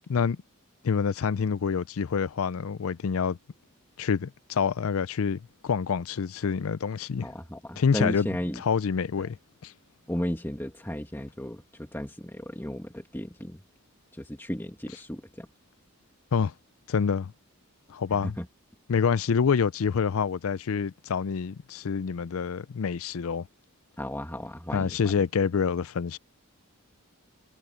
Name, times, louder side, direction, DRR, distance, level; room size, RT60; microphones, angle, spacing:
voice 1, 0.8-3.4 4.0-7.3 7.8-8.3 8.6-9.4 9.6-9.7 16.3-16.5 16.9-17.3 17.9-18.4 18.9-23.5 24.7-26.2, left 6 dB, 75° left, 0.5 m, -27 dB
voice 2, 7.2-8.6 10.1-13.6 14.1-15.5 18.2-18.5 24.0-25.1, equal, 10° left, 2.2 m, -34 dB
head